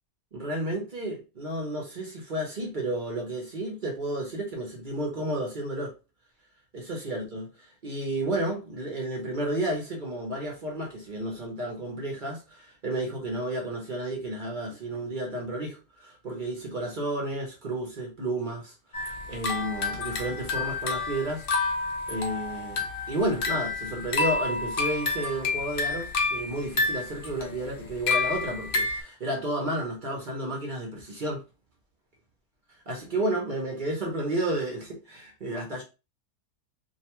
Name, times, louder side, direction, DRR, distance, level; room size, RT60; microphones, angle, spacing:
voice 1, 0.3-5.9 6.7-7.5 7.8-18.7 19.0-21.5 22.1-31.4 32.9-35.8, right 1 dB, 50° right, 0.6 m, -32 dB
sound 1, 18.9-29.0, left 3 dB, 80° left, 0.5 m, -29 dB
2.6 x 2.2 x 2.9 m
omnidirectional pair, 1.7 m